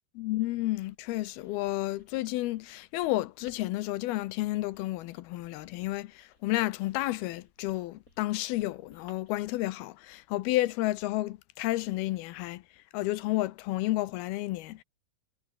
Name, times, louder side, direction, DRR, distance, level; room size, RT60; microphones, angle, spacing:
voice 1, 0.2-12.6 12.9-14.8, left 17 dB, 80° left, 2.6 m, -31 dB
Writing, 0.9-9.6, left 2 dB, 20° left, 8.1 m, -62 dB
omnidirectional pair, 4.6 m